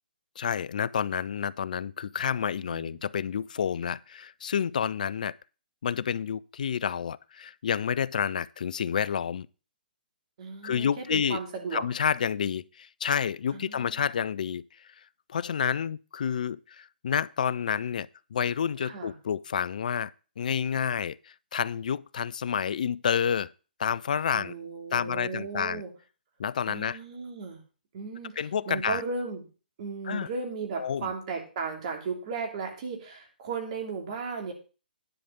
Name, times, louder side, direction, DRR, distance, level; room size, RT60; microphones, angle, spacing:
voice 1, 0.4-5.3 5.8-9.5 10.6-11.4 11.7-14.9 15.3-23.5 23.8-24.5 24.9-25.8 26.4-27.0 28.4-29.0 30.1-30.3 30.8-31.1, left 8 dB, 55° left, 0.4 m, -29 dB
voice 2, 2.6-3.0 10.4-11.8 13.5-14.0 18.8-19.1 24.3-25.9 26.7-27.6 27.9-29.4 29.8-34.5, right 4 dB, 45° right, 2.8 m, -35 dB
10.0 x 5.0 x 6.9 m
figure-of-eight pair, 130°, 5 cm